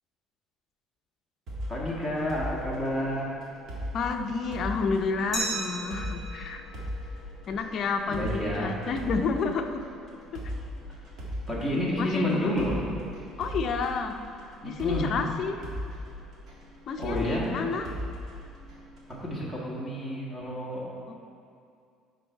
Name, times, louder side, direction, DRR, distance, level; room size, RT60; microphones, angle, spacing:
sound 1, 1.5-19.2, equal, 45° right, 1.8 m, -39 dB
voice 1, 1.7-3.4 8.1-8.8 11.5-12.7 14.6-15.1 17.0-17.5 19.1-20.9, left 1 dB, 5° right, -5 dB, 1.5 m, -30 dB
voice 2, 3.9-6.6 7.5-9.7 10.3-10.4 12.0-12.5 13.4-14.2 14.6-15.6 16.9-17.9 21.1-21.2, left 4 dB, 40° left, 4 dB, 0.5 m, -30 dB
Glass, 5.3-8.1, right 2 dB, 20° right, 2.0 m, -37 dB
10.5 x 4.0 x 4.5 m, 2.4 s
cardioid pair, 145°, 0 cm